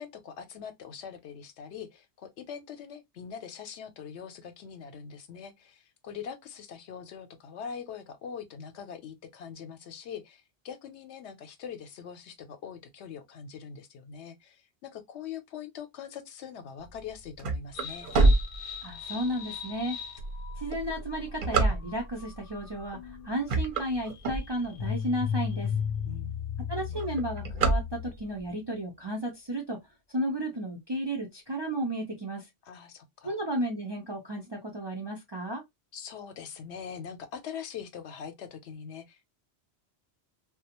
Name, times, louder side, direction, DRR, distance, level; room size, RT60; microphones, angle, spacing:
voice 1, 0.0-18.1 26.1-26.4 32.6-33.4 35.9-39.3, left 7 dB, 80° left, 0.9 m, -42 dB
sound 1, 16.9-19.2 19.8-19.9 20.5-22.3 22.9-23.1 23.4-24.9 25.4-25.5 25.8-25.9 26.2-26.5 26.8-28.4, right 3 dB, 55° right, 0.8 m, -26 dB
sound 2, 17.7-28.3, left 7 dB, 60° left, 0.7 m, -37 dB
voice 2, 18.8-20.0 20.6-25.7 26.7-29.8 30.1-32.5 33.2-35.6, right 1 dB, 40° right, 0.4 m, -33 dB
2.4 x 2.1 x 2.8 m
omnidirectional pair, 1.1 m